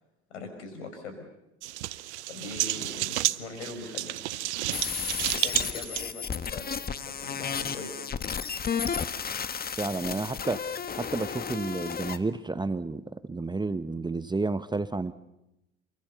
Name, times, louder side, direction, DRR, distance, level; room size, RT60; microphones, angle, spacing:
voice 1, 0.3-1.3 2.3-4.6 5.1-8.0, left 3 dB, 80° left, 7 dB, 5.9 m, -42 dB
sound 1, 1.6-6.0, right 17 dB, 75° right, 0.8 m, -31 dB
sound 2, 4.7-12.2, left 6 dB, 25° left, 1.5 m, -33 dB
voice 2, 9.8-10.6 10.9-15.1, right 3 dB, 10° right, 14 dB, 1.1 m, -31 dB
28.0 x 23.5 x 7.0 m, 0.90 s
hypercardioid pair, 70°, 35 cm